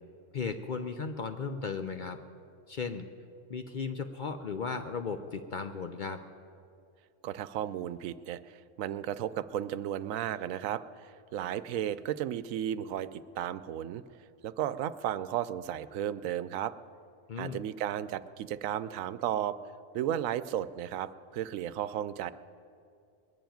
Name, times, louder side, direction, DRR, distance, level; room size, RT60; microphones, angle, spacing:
voice 1, 0.3-2.2 2.7-3.1 3.5-6.2 17.3-17.6, left 5 dB, 50° left, 7 dB, 0.6 m, -36 dB
voice 2, 7.2-14.0 14.4-16.7 17.4-19.6 19.9-22.3, right 11 dB, 85° right, 15 dB, 1.0 m, -34 dB
21.5 x 7.1 x 9.1 m, 2.4 s
omnidirectional pair, 1.4 m